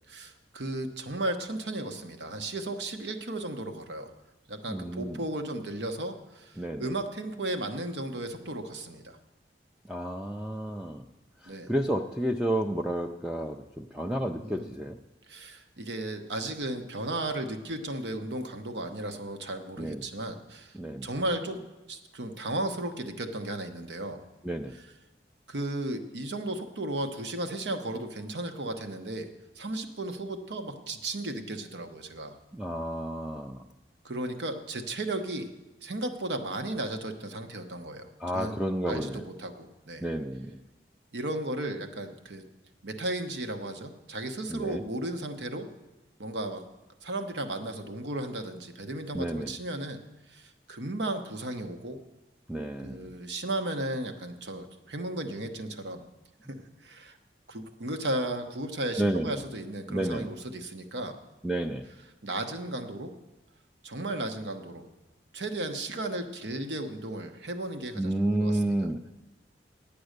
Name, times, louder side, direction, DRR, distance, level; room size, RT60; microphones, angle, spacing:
voice 1, 0.1-4.1 4.5-9.2 11.5-11.7 14.3-14.7 15.3-21.6 21.9-24.2 25.5-29.3 29.5-32.4 34.0-35.5 35.8-38.6 38.9-40.1 41.1-42.4 42.8-45.7 46.2-46.6 47.0-50.0 50.3-52.0 52.8-56.0 56.5-57.2 57.5-61.2 62.2-63.1 63.8-64.9 65.3-68.8, right 1 dB, 85° right, 6 dB, 1.1 m, -35 dB
voice 2, 4.7-5.2 6.6-6.9 9.9-11.1 11.4-15.0 19.8-20.1 20.7-21.1 24.4-24.7 32.5-33.7 38.2-39.3 40.0-40.6 44.5-44.8 49.1-49.6 52.5-53.1 59.0-59.4 59.9-60.3 61.4-61.9 67.9-69.1, right 1 dB, 5° right, 2 dB, 0.4 m, -31 dB
10.0 x 8.7 x 6.5 m, 1.1 s
head